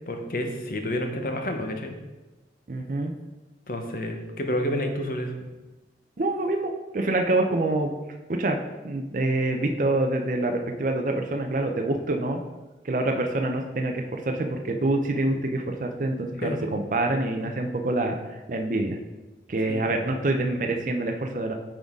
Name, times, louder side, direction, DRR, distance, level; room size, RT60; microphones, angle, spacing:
voice 1, 0.1-1.9 3.7-5.3 16.4-16.7 19.7-20.0, left 1 dB, 50° left, 4 dB, 0.8 m, -29 dB
voice 2, 2.7-3.1 6.2-7.9 8.3-8.6 8.8-12.4 12.8-19.0 19.5-21.5, right 2 dB, 45° right, 3 dB, 0.5 m, -26 dB
8.7 x 3.9 x 3.6 m, 1.1 s
head